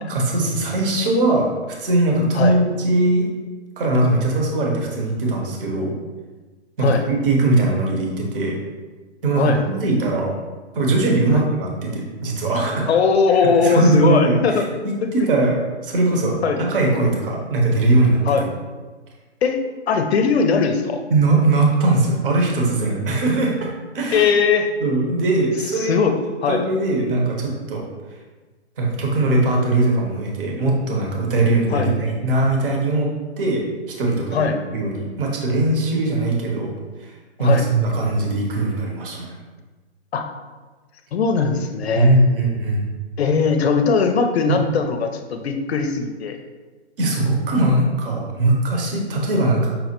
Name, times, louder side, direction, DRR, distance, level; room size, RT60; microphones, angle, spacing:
voice 1, 0.1-3.3 3.8-5.9 6.8-8.6 9.2-10.3 10.7-12.9 13.4-15.5 15.8-18.2 21.1-23.7 23.9-24.3 24.8-26.0 26.5-27.8 28.8-33.1 33.4-33.6 34.0-36.7 37.0-39.3 42.0-42.9 44.5-44.6 47.0-49.7, right 2 dB, 50° right, -1 dB, 0.9 m, -20 dB
voice 2, 9.3-9.6 11.3-11.4 12.9-14.7 16.4-16.6 18.3-18.4 19.4-19.6 19.9-21.0 24.1-24.7 25.8-26.6 31.7-31.9 34.3-34.6 37.4-37.7 40.1-40.2 41.1-42.1 43.2-46.4, left 5 dB, 65° left, 6 dB, 0.5 m, -19 dB
5.5 x 2.1 x 2.9 m, 1.3 s
hypercardioid pair, 135°, 35 cm